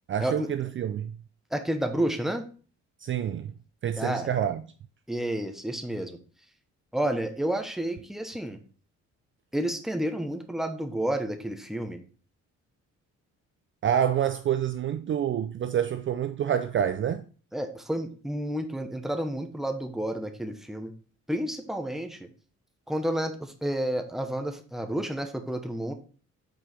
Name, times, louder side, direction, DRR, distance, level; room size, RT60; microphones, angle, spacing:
voice 1, 0.1-1.2 3.0-3.5 3.8-4.6 13.8-17.2, right 9 dB, 40° right, 0.4 m, -27 dB
voice 2, 1.5-2.4 4.0-4.3 5.1-6.2 6.9-8.6 9.5-12.0 17.5-20.9 21.3-22.3 22.9-25.9, right 1 dB, ahead, 0.9 m, -30 dB
6.1 x 4.8 x 3.4 m
cardioid pair, 90°, 30 cm